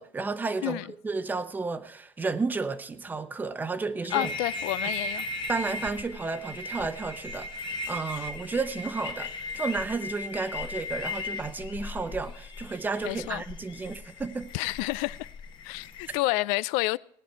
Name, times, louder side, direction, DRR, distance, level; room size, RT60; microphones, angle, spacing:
voice 1, 0.0-4.3 5.5-14.5, right 4 dB, 15° right, 0.8 m, -32 dB
voice 2, 4.1-5.3 13.0-13.4 14.5-15.2 15.6-17.0, left 21 dB, 90° left, 0.4 m, -29 dB
sound 1, 4.1-16.2, left 2 dB, 40° left, 1.0 m, -37 dB
18.0 x 9.9 x 4.6 m
cardioid pair, 150°, 12 cm